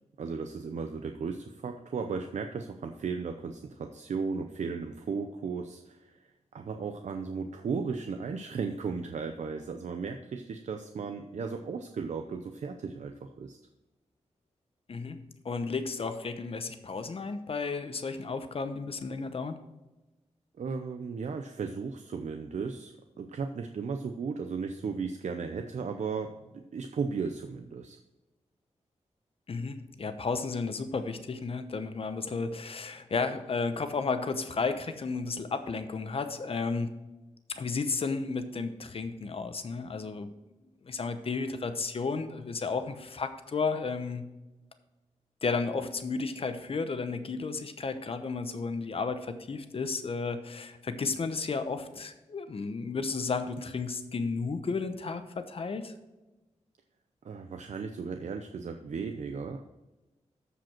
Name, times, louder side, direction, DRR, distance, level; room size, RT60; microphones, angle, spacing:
voice 1, 0.2-6.1 6.5-13.6 20.6-28.0 57.2-59.6, right 5 dB, 75° right, 6 dB, 0.6 m, -35 dB
voice 2, 14.9-15.2 15.4-19.6 29.5-36.9 37.5-40.3 40.8-44.3 45.4-55.9, left 4 dB, 50° left, 9 dB, 0.9 m, -33 dB
13.5 x 5.1 x 4.4 m, 1.1 s
wide cardioid pair, 135°, 12 cm